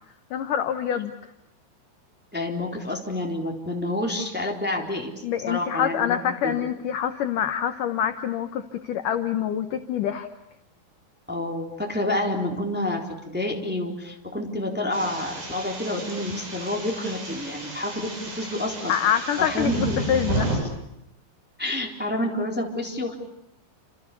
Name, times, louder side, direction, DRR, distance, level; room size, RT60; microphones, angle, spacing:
voice 1, 0.3-1.1 5.2-10.3 18.9-20.5, left 9 dB, 70° left, 8 dB, 2.0 m, -26 dB
voice 2, 2.3-5.1 5.5-6.6 11.3-18.9 19.4-20.1 21.6-23.1, left 1 dB, ahead, 1 dB, 3.0 m, -28 dB
sound 1, 14.9-20.6, right 2 dB, 50° right, 8.8 m, -32 dB
29.0 x 27.5 x 6.9 m, 0.81 s
omnidirectional pair, 5.3 m